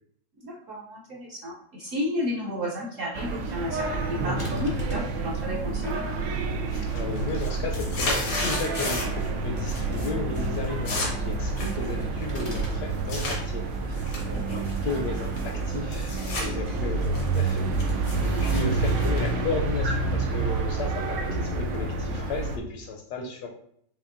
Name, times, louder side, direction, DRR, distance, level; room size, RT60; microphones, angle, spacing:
voice 1, 0.4-6.0 14.3-14.6 18.3-18.4, left 1 dB, 65° right, -3 dB, 0.8 m, -33 dB
sound 1, 3.1-22.6, right 3 dB, 80° right, 1.2 m, -28 dB
sound 2, 4.4-5.2 12.3-12.9, left 2 dB, 55° left, 0.3 m, -38 dB
sound 3, 5.8-6.3 6.6-9.3 9.6-10.1 10.4-13.4 13.9-16.5 16.8-20.0, left 2 dB, 90° left, 1.8 m, -34 dB
voice 2, 6.9-14.0 14.3-19.9 20.3-23.5, left 4 dB, 70° left, 1 dB, 1.0 m, -34 dB
5.3 x 2.5 x 2.5 m, 0.68 s
omnidirectional pair, 2.0 m